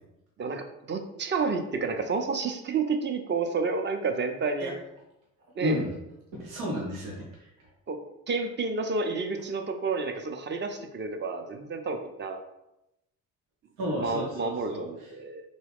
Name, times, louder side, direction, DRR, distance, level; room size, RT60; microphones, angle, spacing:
voice 1, 0.4-4.7 5.6-5.8 7.9-8.0 8.3-12.4 13.9-15.4, right 4 dB, 30° right, 5 dB, 0.5 m, -30 dB
voice 2, 5.6-5.9 6.3-7.7 13.8-15.1, equal, 85° right, -3 dB, 0.8 m, -33 dB
3.0 x 2.2 x 3.4 m, 0.87 s
hypercardioid pair, 50°, 41 cm